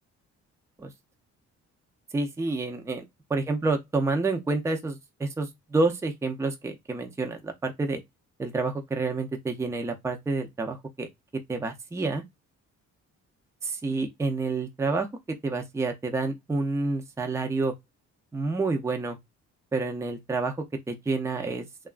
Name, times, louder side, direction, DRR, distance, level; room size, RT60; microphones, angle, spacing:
voice 1, 2.1-3.0 3.3-8.0 8.4-11.1 11.5-12.2 13.6-15.1 15.4-17.7 18.3-19.2 19.7-21.9, right 3 dB, 10° right, 0.5 m, -29 dB
2.8 x 2.3 x 2.4 m
cardioid pair, 90°, 30 cm